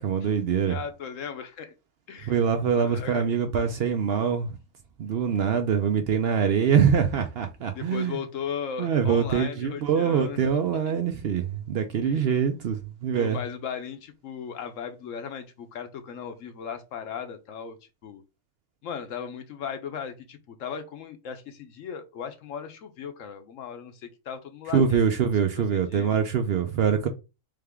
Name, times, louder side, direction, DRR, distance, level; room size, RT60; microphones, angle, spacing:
voice 1, 0.0-0.8 2.3-4.5 5.0-8.2 8.8-13.4 24.7-27.1, right 7 dB, 65° right, 0.6 m, -24 dB
voice 2, 0.7-1.7 2.1-2.4 2.8-3.2 7.7-10.4 12.0-12.3 13.2-17.8 18.0-18.2 18.8-25.3 25.9-26.1, left 7 dB, 70° left, 1.0 m, -37 dB
3.7 x 3.4 x 3.4 m
omnidirectional pair, 1.5 m